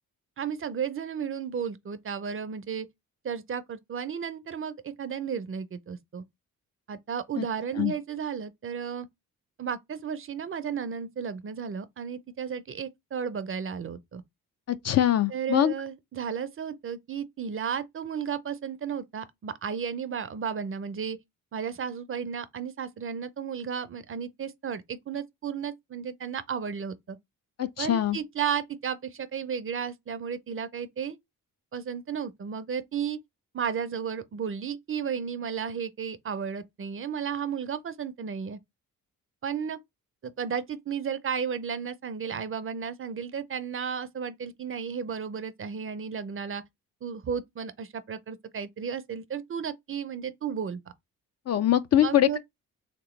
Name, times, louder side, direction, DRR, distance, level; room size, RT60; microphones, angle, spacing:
voice 1, 0.4-2.9 3.2-6.2 6.9-9.1 9.6-14.2 15.3-21.2 21.5-27.2 27.8-31.2 31.7-33.2 33.5-38.6 39.4-39.8 40.4-46.6 47.0-50.8 52.0-52.4, right 7 dB, 35° right, 0.5 m, -33 dB
voice 2, 14.7-15.7 27.6-28.2 51.5-52.4, left 11 dB, 45° left, 0.4 m, -23 dB
3.3 x 2.9 x 3.1 m
cardioid pair, 70°, 36 cm